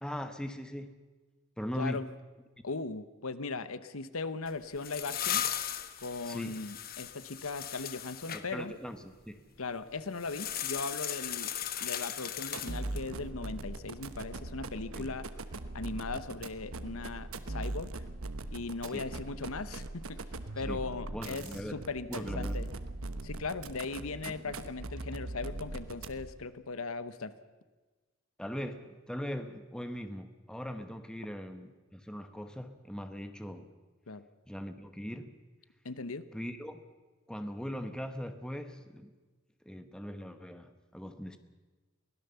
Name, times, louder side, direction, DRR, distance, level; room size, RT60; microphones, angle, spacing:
voice 1, 0.0-1.0 1.6-2.1 6.2-6.6 8.5-9.5 14.9-15.2 18.9-19.1 20.7-21.8 22.1-22.5 24.3-24.6 28.4-33.7 34.5-35.4 36.3-36.8 37.3-39.1 39.6-41.4, equal, 5° left, 8 dB, 1.0 m, -40 dB
voice 2, 1.8-2.1 2.6-5.5 6.0-8.7 9.6-11.5 11.8-15.3 15.7-17.9 18.5-20.2 20.5-22.7 23.2-27.3 34.1-34.2 35.8-36.3, left 3 dB, 75° left, 13 dB, 1.0 m, -38 dB
sound 1, 4.5-8.4 10.2-13.1, left 10 dB, 40° left, 1.1 m, -37 dB
sound 2, 12.5-26.4, right 2 dB, 75° right, 1.1 m, -40 dB
23.0 x 16.5 x 6.9 m, 1.3 s
head